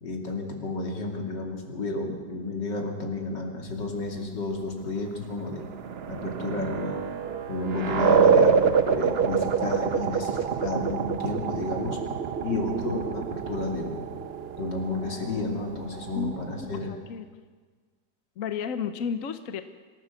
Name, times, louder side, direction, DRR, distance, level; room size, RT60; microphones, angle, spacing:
voice 1, 0.0-5.7 6.1-7.0 7.5-12.0 12.4-14.1 14.6-16.9, left 2 dB, 75° left, 1 dB, 3.4 m, -32 dB
sound 1, 5.4-16.8, right 6 dB, 50° right, 0.8 m, -26 dB
voice 2, 16.1-17.3 18.4-19.6, left 7 dB, 55° left, 9 dB, 1.1 m, -33 dB
25.0 x 15.0 x 7.1 m, 1.5 s
omnidirectional pair, 1.9 m